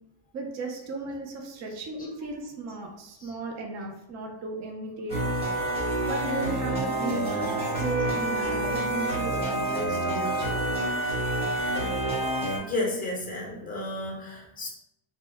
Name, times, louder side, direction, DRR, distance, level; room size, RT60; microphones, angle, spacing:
voice 1, 0.3-5.2 6.1-7.5 7.8-10.5, right 3 dB, 35° right, 2 dB, 0.4 m, -35 dB
sound 1, 5.1-12.6, right 1 dB, 10° right, 0.9 m, -28 dB
voice 2, 12.6-14.7, left 2 dB, 15° left, -1 dB, 0.6 m, -32 dB
2.8 x 2.1 x 3.3 m, 0.85 s
cardioid pair, 150°, 50 cm